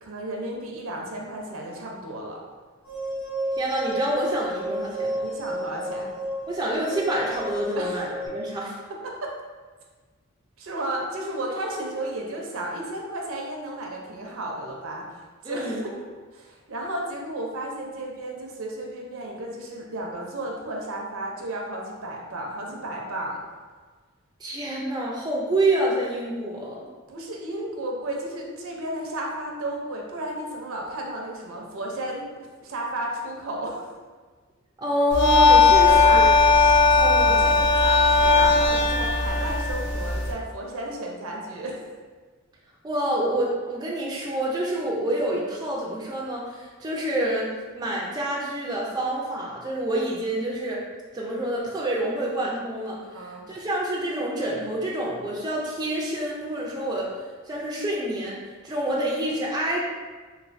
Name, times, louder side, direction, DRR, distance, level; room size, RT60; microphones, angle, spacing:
voice 1, 0.0-2.4 5.2-6.1 7.8-8.0 9.0-9.3 10.6-15.9 16.3-23.4 27.1-33.9 35.9-36.3 36.8-41.8 53.1-53.5, right 1 dB, 65° right, 0 dB, 0.6 m, -33 dB
sound 1, 2.9-8.3, right 1 dB, 80° left, 0.9 m, -32 dB
voice 2, 3.6-5.3 6.5-8.8 15.4-15.8 24.4-26.9 34.8-36.3 37.0-37.5 42.8-47.5 47.7-50.8 51.1-57.1 57.5-59.8, right 1 dB, 20° right, -4 dB, 0.4 m, -27 dB
sound 2, 35.1-40.3, left 4 dB, 55° left, 0.5 m, -18 dB
3.1 x 3.0 x 2.5 m, 1.4 s
head